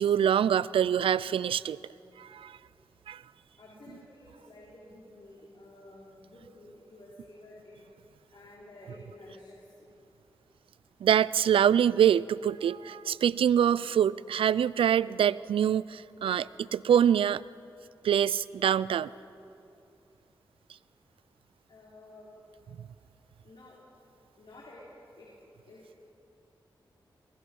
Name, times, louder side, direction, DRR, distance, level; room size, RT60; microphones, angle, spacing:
voice 1, 0.0-1.8 2.2-2.6 3.1-3.2 11.0-17.4 18.0-19.1, right 9 dB, 85° right, 20 dB, 0.4 m, -25 dB
voice 2, 3.6-7.8 8.3-9.9 21.7-22.3 23.4-23.8 24.4-24.8 25.2-25.3 25.6-25.9, left 2 dB, 65° left, -6 dB, 4.3 m, -51 dB
22.0 x 22.0 x 5.4 m, 2.7 s
cardioid pair, 45°, 9 cm